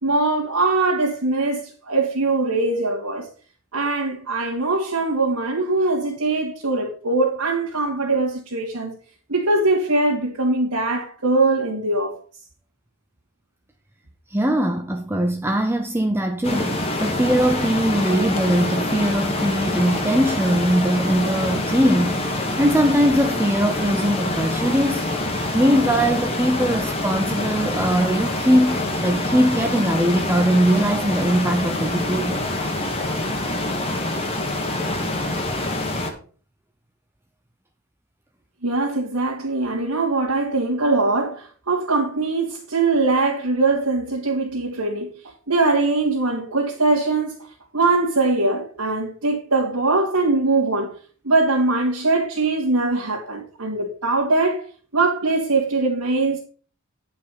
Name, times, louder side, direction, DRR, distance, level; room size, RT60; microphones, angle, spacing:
voice 1, 0.0-3.3 3.7-9.0 9.3-12.1 38.6-45.1 45.5-47.3 47.7-50.9 51.2-54.6 54.9-56.4, right 3 dB, 80° right, 2.9 m, -21 dB
voice 2, 14.3-25.0 25.5-32.4, equal, 10° right, 0.7 m, -21 dB
sound 1, 16.4-36.1, left 1 dB, 25° left, 1.8 m, -25 dB
10.5 x 5.7 x 5.8 m
head